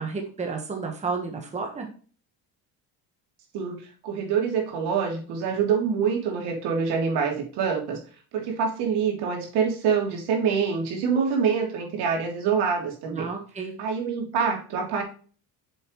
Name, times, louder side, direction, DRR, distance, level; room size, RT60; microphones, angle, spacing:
voice 1, 0.0-1.9 13.1-13.7, right 4 dB, 15° right, 2 dB, 1.4 m, -31 dB
voice 2, 3.5-8.0 8.3-13.3 13.8-15.0, right 6 dB, 80° right, 1 dB, 3.1 m, -25 dB
7.9 x 7.0 x 3.2 m, 0.40 s
cardioid pair, 165°, 40 cm